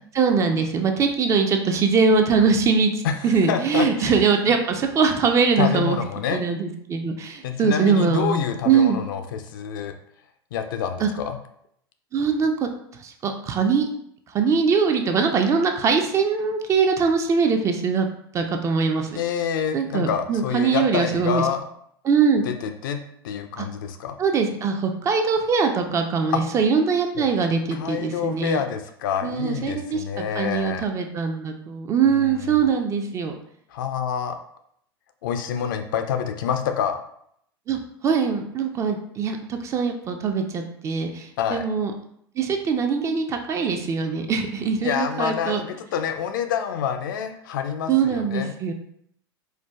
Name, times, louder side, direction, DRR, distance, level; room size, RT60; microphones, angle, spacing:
voice 1, 0.1-2.9 3.2-6.0 6.3-9.0 11.0-11.1 12.1-12.5 13.0-13.9 14.3-18.1 18.3-19.1 19.7-21.4 22.0-22.5 23.6-23.7 24.2-28.6 29.2-30.0 30.4-33.3 37.7-41.9 42.4-45.6 47.9-48.7, right 5 dB, 25° right, 5 dB, 0.3 m, -22 dB
voice 2, 3.0-4.5 5.6-6.4 7.4-9.9 10.5-11.4 19.2-21.6 22.4-24.2 26.3-26.4 27.2-27.3 27.7-30.9 32.0-32.6 33.7-34.4 35.2-37.0 41.4-41.7 44.8-48.5, left 7 dB, 55° left, 7 dB, 0.4 m, -27 dB
4.4 x 2.1 x 2.3 m, 0.69 s
figure-of-eight pair, 85°, 13 cm